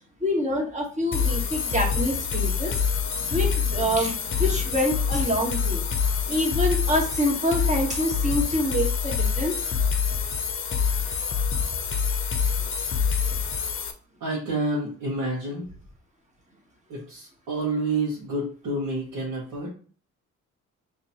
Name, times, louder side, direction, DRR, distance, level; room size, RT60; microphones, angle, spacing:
voice 1, 0.2-2.8 3.1-5.8 6.3-9.5, equal, 25° right, -1 dB, 1.5 m, -26 dB
sound 1, 1.1-13.9, left 6 dB, 45° left, 0.7 m, -26 dB
voice 2, 14.2-15.7 16.9-19.7, right 2 dB, 75° right, -6 dB, 1.5 m, -29 dB
3.0 x 2.7 x 4.3 m, 0.43 s
cardioid pair, 90°, 30 cm